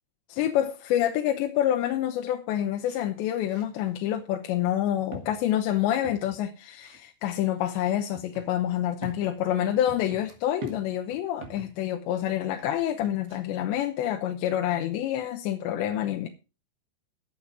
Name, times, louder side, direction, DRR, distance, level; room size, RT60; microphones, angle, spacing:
voice 1, 0.3-16.3, left 11 dB, 75° left, 3.1 m, -27 dB
sound 1, 2.9-3.0 3.4-3.9 4.6-4.8 5.1-6.5 6.8-7.0 7.6-11.8 12.6-13.4 13.7-13.8, right 3 dB, 70° right, 4.5 m, -45 dB
15.0 x 9.1 x 4.7 m
omnidirectional pair, 5.4 m